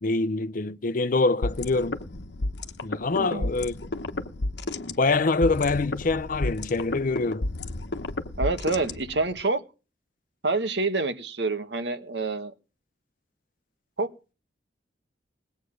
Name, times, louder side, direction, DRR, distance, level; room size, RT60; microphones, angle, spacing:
voice 1, 0.0-2.0 2.8-3.9 5.0-7.5, left 3 dB, 50° left, 0.6 m, -25 dB
sound 1, 1.4-9.4, left 2 dB, 70° left, 1.1 m, -32 dB
voice 2, 3.2-3.5 8.4-9.6 10.4-12.5 14.0-14.1, right 3 dB, 70° right, 1.4 m, -27 dB
19.5 x 8.2 x 6.4 m
head